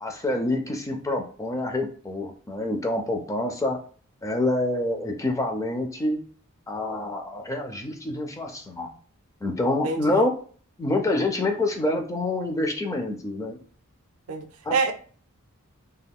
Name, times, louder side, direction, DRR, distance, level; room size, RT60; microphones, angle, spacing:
voice 1, 0.0-3.8 4.2-6.2 6.7-8.9 9.4-10.3 10.8-13.6 14.6-14.7, left 2 dB, 15° left, 4 dB, 0.4 m, -27 dB
voice 2, 9.8-10.2 14.3-14.9, right 4 dB, 70° right, 6 dB, 0.5 m, -27 dB
2.3 x 2.2 x 3.5 m, 0.43 s
head